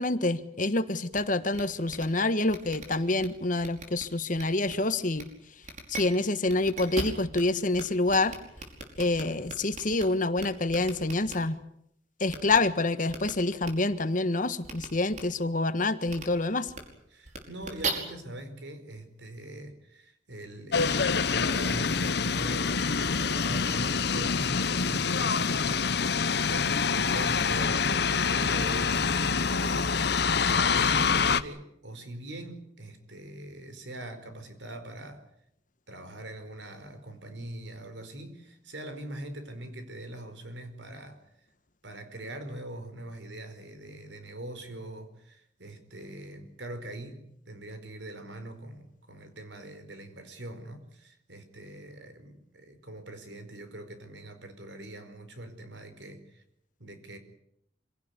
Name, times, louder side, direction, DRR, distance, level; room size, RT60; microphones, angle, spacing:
voice 1, 0.0-5.3 5.9-8.3 9.0-11.6 12.2-16.7, left 2 dB, 45° left, 12 dB, 1.5 m, -27 dB
sound 1, 1.1-1.2 1.5-1.6 1.9-2.0 2.5-3.3 3.6-4.0 4.3-4.7 5.1-5.2 5.6-6.0 6.5-7.4 7.7-7.8 8.1-10.0 10.4-11.3 12.3-12.6 13.1-13.3 13.6-13.7 14.6-14.9 15.1-15.2 16.1-16.2 16.7-16.8 17.3-17.9, right 3 dB, 40° right, 5.2 m, -37 dB
voice 2, 17.1-35.2 35.9-41.2 41.8-56.4 56.8-57.2, right 1 dB, 75° right, 9 dB, 4.8 m, -42 dB
sound 2, 20.7-31.4, left 5 dB, 60° left, 1.0 m, -26 dB
26.5 x 17.5 x 9.8 m, 0.75 s
head